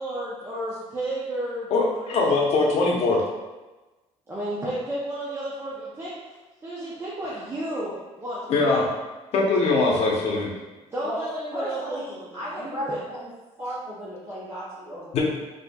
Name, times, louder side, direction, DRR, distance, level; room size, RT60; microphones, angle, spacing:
voice 1, 0.0-1.7 2.0-2.3 4.3-6.1 6.6-8.8 10.9-12.3 12.6-13.0, right 1 dB, 20° right, -8 dB, 0.6 m, -32 dB
voice 2, 1.7-3.2 8.5-8.8 9.3-10.5 15.1-15.2, left 3 dB, 55° left, -2 dB, 0.8 m, -21 dB
voice 3, 11.5-13.3 13.6-15.2, equal, 50° right, -11 dB, 1.4 m, -34 dB
4.2 x 2.8 x 2.3 m, 1.1 s
cardioid pair, 150°, 13 cm